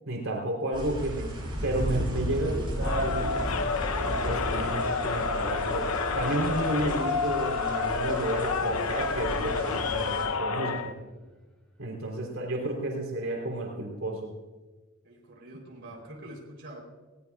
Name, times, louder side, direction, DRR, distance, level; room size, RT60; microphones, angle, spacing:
voice 1, 0.1-1.3 1.6-3.5 4.1-5.9 6.1-10.9 11.8-14.3, right 1 dB, 70° right, -1 dB, 3.6 m, -32 dB
sound 1, 0.7-10.2, equal, 25° right, 5.9 m, -35 dB
sound 2, 2.7-13.2, equal, 5° left, 3.2 m, -51 dB
Crowd, 2.8-10.9, left 4 dB, 75° left, 0.8 m, -29 dB
voice 2, 15.0-16.8, right 1 dB, 55° right, -2 dB, 3.7 m, -45 dB
20.5 x 18.0 x 2.4 m, 1.2 s
head